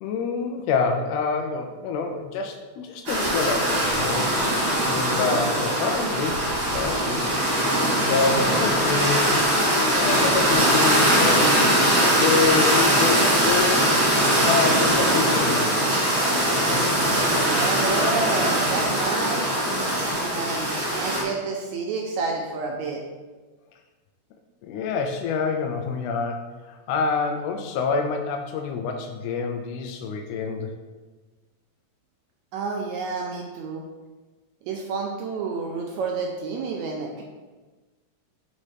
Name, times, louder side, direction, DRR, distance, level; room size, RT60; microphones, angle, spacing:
voice 1, 0.0-4.3 4.9-6.4 6.7-7.2 8.0-13.9 14.4-15.6 24.6-30.7, left 5 dB, 80° left, 4 dB, 1.5 m, -27 dB
sound 1, 3.1-21.2, right 1 dB, 45° right, 2.5 m, -21 dB
voice 2, 17.6-19.5 20.2-23.0 32.5-33.9 34.7-37.2, right 4 dB, 80° right, 0 dB, 1.9 m, -29 dB
5.2 x 4.2 x 4.9 m, 1.3 s
omnidirectional pair, 3.5 m